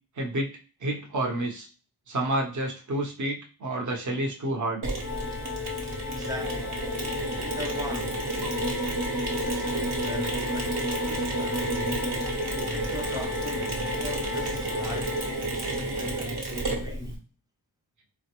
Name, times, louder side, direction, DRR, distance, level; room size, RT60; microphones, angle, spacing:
voice 1, 0.2-0.5 0.8-1.7 2.1-4.8, right 1 dB, 40° right, 0.7 m, -29 dB
Mechanisms, 4.8-17.2, right 2 dB, 65° right, 1.0 m, -30 dB
Organ, 5.0-15.9, left 9 dB, 30° left, 0.4 m, -37 dB
voice 2, 5.7-6.8 7.4-8.3 9.1-12.1 12.6-17.2, equal, 10° right, 0.6 m, -39 dB
3.7 x 2.1 x 2.9 m
wide cardioid pair, 110°, 44 cm